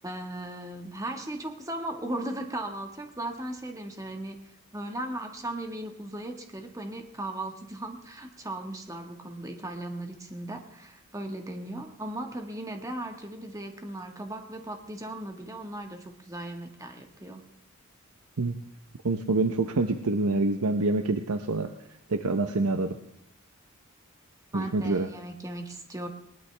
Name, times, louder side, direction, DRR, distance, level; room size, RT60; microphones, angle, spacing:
voice 1, 0.0-4.4 4.7-17.4 24.5-26.1, right 1 dB, 15° right, 4 dB, 1.5 m, -37 dB
voice 2, 19.0-21.7 22.1-23.0 24.5-25.1, right 2 dB, 85° right, 7 dB, 0.8 m, -26 dB
20.0 x 20.0 x 3.4 m, 0.74 s
head